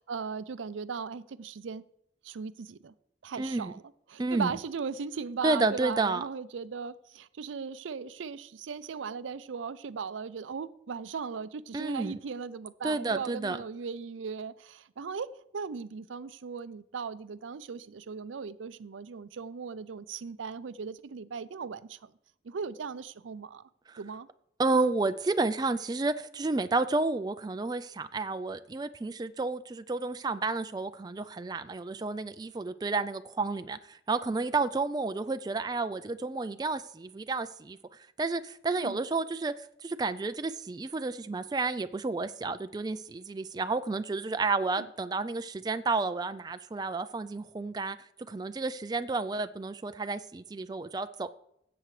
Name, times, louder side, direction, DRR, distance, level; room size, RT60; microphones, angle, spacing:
voice 1, 0.0-1.8 2.2-2.9 3.2-3.8 4.1-22.1 22.4-23.6 24.0-24.3 24.7-24.9 38.7-39.1 44.7-44.9, right 5 dB, 90° right, 0.5 m, -38 dB
voice 2, 3.4-3.7 4.2-4.5 5.4-6.2 11.7-12.2 12.8-13.6 23.9-24.0 24.6-51.3, right 3 dB, 20° right, 0.3 m, -31 dB
16.0 x 7.9 x 3.2 m
head